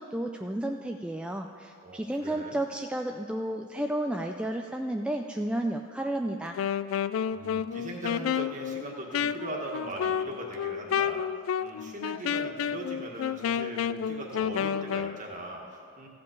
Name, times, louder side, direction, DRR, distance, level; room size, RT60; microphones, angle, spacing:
voice 1, 0.0-6.6, right 1 dB, 5° right, 3 dB, 0.3 m, -32 dB
voice 2, 1.8-2.6 7.3-11.2 11.6-16.1, right 1 dB, 40° right, 0 dB, 1.7 m, -40 dB
Wind instrument woodwind instrument, 6.5-15.2, left 8 dB, 75° left, 0.3 m, -30 dB
14.5 x 5.3 x 8.3 m, 2.3 s
head